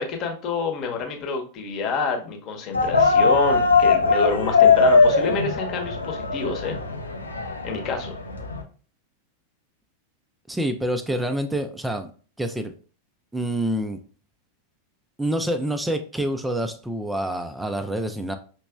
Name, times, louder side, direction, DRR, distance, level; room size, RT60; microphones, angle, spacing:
voice 1, 0.0-6.8 7.6-8.1, left 4 dB, 35° left, 3 dB, 0.9 m, -28 dB
sound 1, 2.7-8.6, left 4 dB, 80° left, 0.6 m, -20 dB
voice 2, 10.5-12.1 12.4-12.7 13.3-14.0 15.2-18.4, right 1 dB, 5° right, 8 dB, 0.4 m, -27 dB
5.8 x 3.0 x 2.3 m, 0.39 s
figure-of-eight pair, 90°, 0 cm